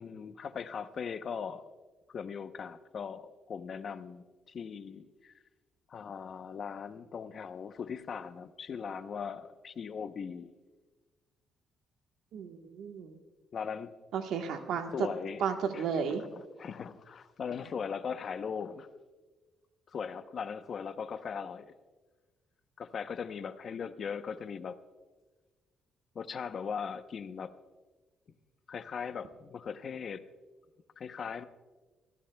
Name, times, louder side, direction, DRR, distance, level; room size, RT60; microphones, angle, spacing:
voice 1, 0.0-1.6 2.1-5.3 5.9-10.5 13.5-13.9 14.9-15.4 15.7-16.0 16.4-18.9 19.9-21.7 22.8-24.8 26.1-27.6 28.7-30.2 31.0-31.5, left 6 dB, 55° left, 0.8 m, -39 dB
voice 2, 12.3-13.2 14.1-14.9 15.4-16.2, right 6 dB, 80° right, 1.2 m, -33 dB
27.5 x 15.0 x 2.3 m
cardioid pair, 90°, 0 cm